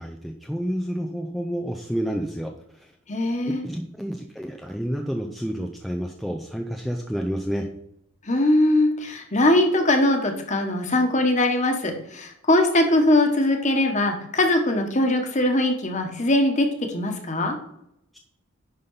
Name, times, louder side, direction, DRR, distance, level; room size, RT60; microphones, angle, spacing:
voice 1, 0.0-2.9 3.6-7.7 18.1-18.2, equal, ahead, 2 dB, 0.6 m, -30 dB
voice 2, 3.1-3.6 8.3-17.6, left 1 dB, 35° left, 4 dB, 1.5 m, -21 dB
10.5 x 4.2 x 5.7 m, 0.78 s
head